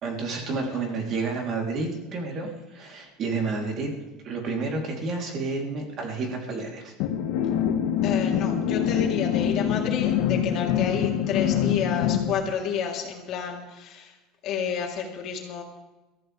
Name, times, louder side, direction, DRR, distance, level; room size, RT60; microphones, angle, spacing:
voice 1, 0.0-3.9 4.2-6.9, right 3 dB, 40° right, 1 dB, 3.4 m, -30 dB
sound 1, 7.0-12.3, left 9 dB, 65° left, 1.5 m, -25 dB
voice 2, 8.0-14.2 14.4-15.6, left 7 dB, 50° left, 0 dB, 3.5 m, -30 dB
22.5 x 14.5 x 3.5 m, 1.1 s
cardioid pair, 145°, 0 cm